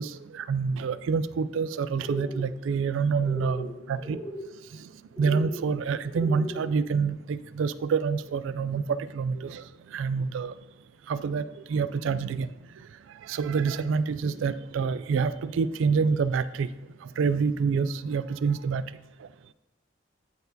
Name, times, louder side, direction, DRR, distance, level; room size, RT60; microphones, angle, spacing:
voice 1, 0.0-4.2 5.2-9.6 9.9-10.5 11.1-12.5 13.3-16.7 17.2-18.8, right 5 dB, 90° right, 15 dB, 0.3 m, -27 dB
sound 1, 2.0-2.5 3.2-3.7 4.0-4.5 5.2-5.6 6.1-6.7, equal, 5° right, 0.8 m, -37 dB
12.0 x 4.4 x 2.7 m, 1.0 s
head